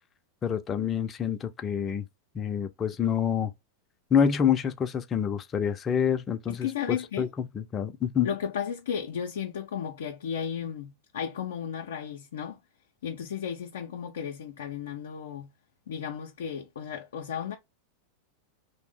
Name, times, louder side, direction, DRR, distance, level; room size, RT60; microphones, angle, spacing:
voice 1, 0.4-2.0 2.3-3.5 4.1-8.3, left 8 dB, 30° left, 0.5 m, -27 dB
voice 2, 6.5-7.3 8.2-12.6 13.0-15.5 15.9-17.5, left 8 dB, 75° left, 0.5 m, -34 dB
2.5 x 2.0 x 3.6 m
hypercardioid pair, 100°, 0 cm